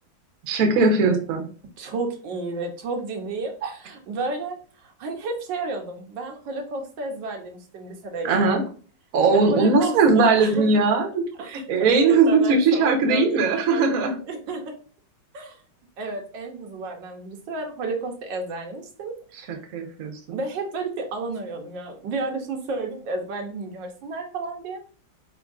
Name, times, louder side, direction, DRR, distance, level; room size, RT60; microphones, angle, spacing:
voice 1, 0.5-1.4 8.2-8.6 9.1-11.1 11.5-14.2 19.5-20.4, right 3 dB, 60° right, 2 dB, 1.1 m, -19 dB
voice 2, 1.8-8.6 9.3-10.7 11.4-14.8 15.3-15.6 16.0-19.1 20.3-24.8, right 3 dB, 85° right, 3 dB, 1.5 m, -32 dB
4.5 x 3.6 x 2.4 m, 0.41 s
omnidirectional pair, 2.0 m